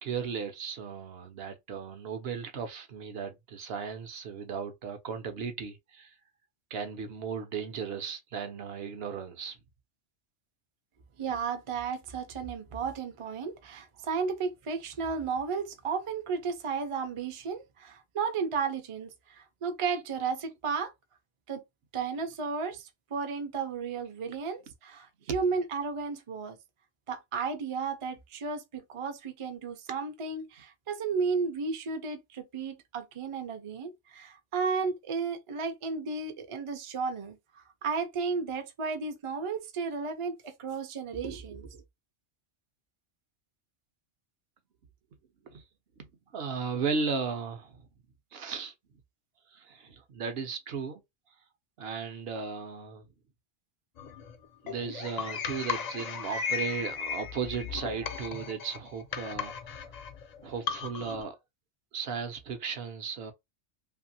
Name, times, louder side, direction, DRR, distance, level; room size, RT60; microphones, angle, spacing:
voice 1, 0.0-6.1 6.7-9.6 25.3-25.4 45.4-45.6 46.0-46.1 46.3-47.8 48.3-48.7 49.5-51.0 51.8-53.0 54.6-59.8 60.4-61.4 61.9-63.3, right 5 dB, 65° right, 0.8 m, -36 dB
voice 2, 11.2-20.9 21.5-21.6 21.9-26.6 27.1-41.8, right 5 dB, 40° right, 0.4 m, -33 dB
sound 1, 54.0-61.2, left 6 dB, 65° left, 0.4 m, -36 dB
2.8 x 2.6 x 2.7 m
omnidirectional pair, 1.2 m